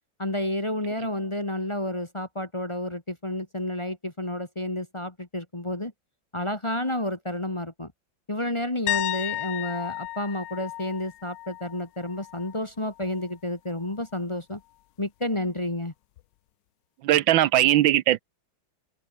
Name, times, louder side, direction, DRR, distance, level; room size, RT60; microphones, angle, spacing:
voice 1, 0.2-5.9 6.3-7.9 8.3-14.6 15.0-15.9, left 1 dB, 15° left, 1.4 m, -30 dB
sound 1, 8.9-12.6 12.9-13.3 16.2-16.3, left 16 dB, 70° left, 1.2 m, -33 dB
voice 2, 17.0-18.2, right 13 dB, 80° right, 1.4 m, -19 dB
omnidirectional pair, 2.2 m